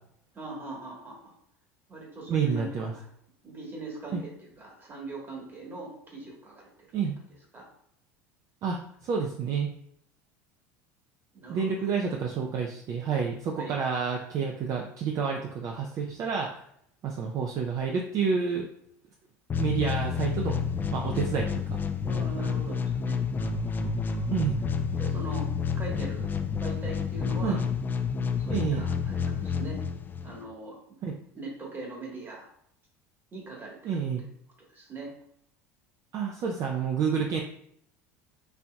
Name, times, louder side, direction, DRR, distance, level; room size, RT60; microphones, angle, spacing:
voice 1, 0.3-1.3 1.9-3.0 3.4-6.7 7.5-7.7 11.3-11.7 13.6-13.7 22.0-24.2 24.9-25.5 25.7-26.3 26.6-27.6 28.4-29.8 30.2-30.8 31.3-32.5 33.3-34.0 34.7-35.1, right 2 dB, 25° right, -2 dB, 1.4 m, -41 dB
voice 2, 2.3-2.9 4.1-4.2 6.9-7.1 8.6-9.7 11.5-16.6 17.0-18.7 19.6-20.6 20.9-21.8 24.3-24.6 27.4-27.6 28.5-28.8 31.0-31.1 33.8-34.2 36.1-37.4, right 6 dB, 50° right, 1 dB, 0.5 m, -29 dB
sound 1, 19.5-30.4, left 6 dB, 25° left, 0.4 m, -29 dB
4.2 x 2.7 x 2.3 m, 0.69 s
hypercardioid pair, 90°, 8 cm